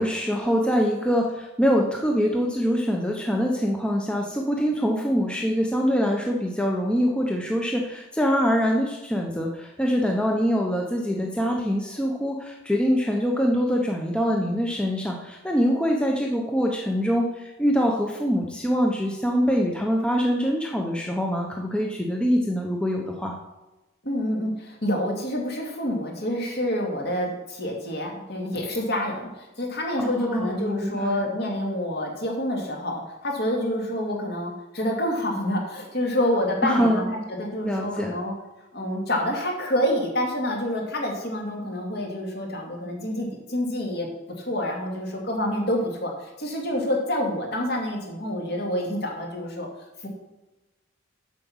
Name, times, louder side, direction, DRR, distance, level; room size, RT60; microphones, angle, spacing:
voice 1, 0.0-23.3 30.0-31.2 36.6-37.1 37.6-38.1, equal, 5° left, 0 dB, 0.8 m, -24 dB
voice 2, 24.0-38.3 38.7-44.1 44.4-49.7 50.0-50.1, left 1 dB, 50° left, 0 dB, 2.2 m, -27 dB
7.5 x 5.9 x 7.2 m, 1.1 s
head